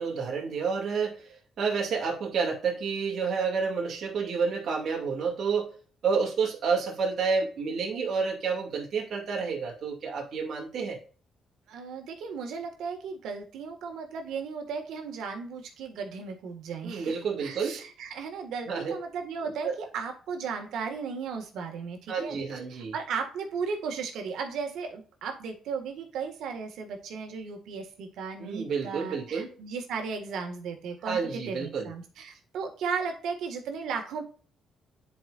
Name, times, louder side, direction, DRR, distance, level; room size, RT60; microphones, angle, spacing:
voice 1, 0.0-5.7 6.0-11.0 16.8-17.8 18.7-18.9 19.6-19.7 22.1-22.9 28.4-29.5 31.0-31.9, right 5 dB, 60° right, -2 dB, 2.4 m, -29 dB
voice 2, 11.7-17.1 17.4-22.4 22.7-34.2, right 5 dB, 80° right, 4 dB, 1.7 m, -35 dB
10.0 x 5.0 x 2.5 m, 0.41 s
cardioid pair, 90°, 0 cm